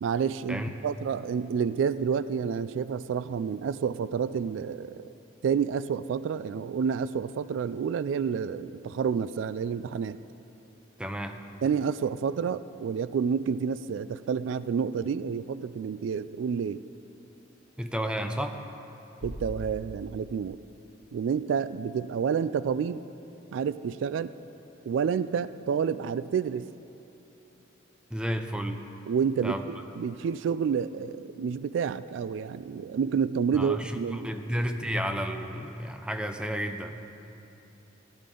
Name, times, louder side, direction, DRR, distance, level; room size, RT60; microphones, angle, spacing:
voice 1, 0.0-5.1 5.4-10.2 11.6-16.8 19.2-20.6 21.1-23.0 23.5-24.3 24.9-26.7 29.1-34.3, right 6 dB, 80° right, 16 dB, 0.3 m, -29 dB
voice 2, 11.0-11.4 17.8-18.6 28.1-28.8 29.4-29.6 33.5-37.0, equal, 5° right, 6 dB, 0.5 m, -32 dB
Bass drum, 19.2-20.9, equal, 55° left, 1.3 m, -41 dB
16.5 x 12.0 x 3.8 m, 3.0 s
head